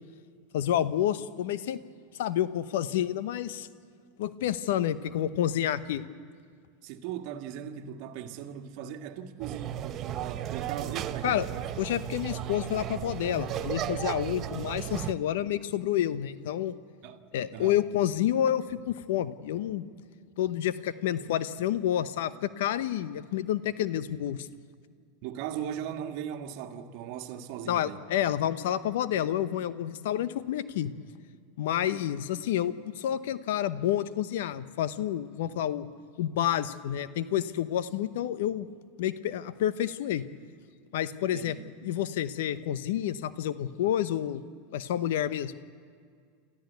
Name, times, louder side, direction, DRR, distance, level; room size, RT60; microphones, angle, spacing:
voice 1, 0.5-1.8 2.2-3.7 4.2-6.1 11.2-11.4 11.8-16.8 17.3-19.8 20.4-24.5 27.7-30.9 31.6-35.9 36.2-38.7 39.0-40.2 40.9-41.6 41.8-44.4 44.7-45.5, left 11 dB, 75° left, 0.9 m, -29 dB
voice 2, 6.8-11.7 17.0-17.2 17.5-17.8 25.2-28.1 41.3-41.7, right 9 dB, 60° right, 1.6 m, -38 dB
sound 1, 9.4-15.1, right 12 dB, 40° right, 0.8 m, -35 dB
27.0 x 14.5 x 8.2 m
hypercardioid pair, 105°, 0 cm